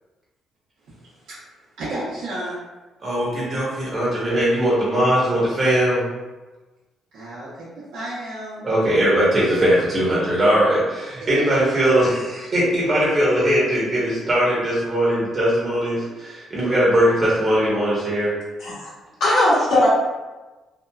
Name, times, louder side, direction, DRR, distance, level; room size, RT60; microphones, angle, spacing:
voice 1, 0.8-2.6 7.1-8.7 11.2-11.4, right 1 dB, 85° right, -11 dB, 0.8 m, -33 dB
voice 2, 3.0-6.0 8.6-18.3, equal, 35° right, -7 dB, 0.9 m, -20 dB
voice 3, 18.6-18.9 19.2-19.9, left 1 dB, 80° left, -13 dB, 1.1 m, -18 dB
2.8 x 2.3 x 2.2 m, 1.2 s
cardioid pair, 90°, 0 cm